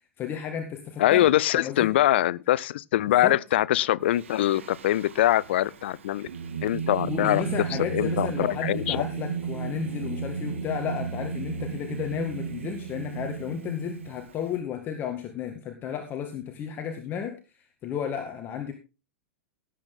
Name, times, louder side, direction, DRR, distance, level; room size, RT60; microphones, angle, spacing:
voice 1, 0.2-1.9 3.1-3.4 7.0-18.7, left 8 dB, 30° left, 2.0 m, -33 dB
voice 2, 1.0-6.3 6.6-7.4 7.9-9.0, left 13 dB, 55° left, 0.6 m, -23 dB
Singing, 4.1-14.5, right 6 dB, 65° right, 2.0 m, -34 dB
17.5 x 8.5 x 3.8 m
figure-of-eight pair, 95°, 7 cm